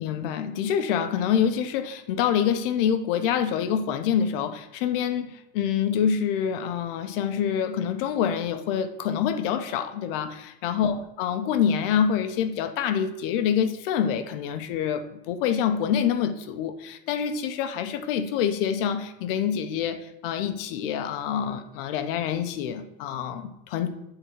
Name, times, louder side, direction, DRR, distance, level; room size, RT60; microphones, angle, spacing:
voice 1, 0.0-23.9, left 8 dB, 70° left, 8 dB, 0.8 m, -26 dB
9.5 x 3.8 x 4.6 m, 0.86 s
cardioid pair, 180°, 29 cm